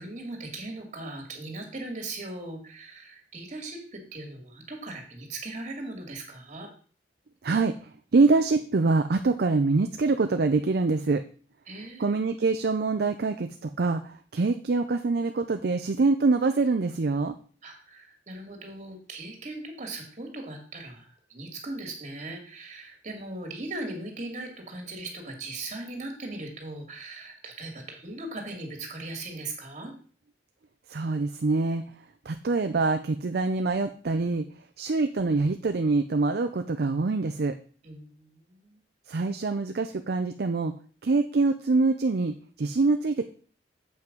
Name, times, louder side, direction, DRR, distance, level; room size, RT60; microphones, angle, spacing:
voice 1, 0.0-6.7 11.7-12.1 17.6-29.9 37.8-38.7, right 2 dB, 45° right, 3 dB, 2.3 m, -39 dB
voice 2, 7.4-7.8 8.1-11.2 12.0-17.3 30.9-31.8 32.3-34.5 34.8-37.5 39.1-40.7 41.0-43.3, right 3 dB, 60° right, 8 dB, 0.5 m, -25 dB
7.8 x 5.7 x 5.2 m, 0.42 s
head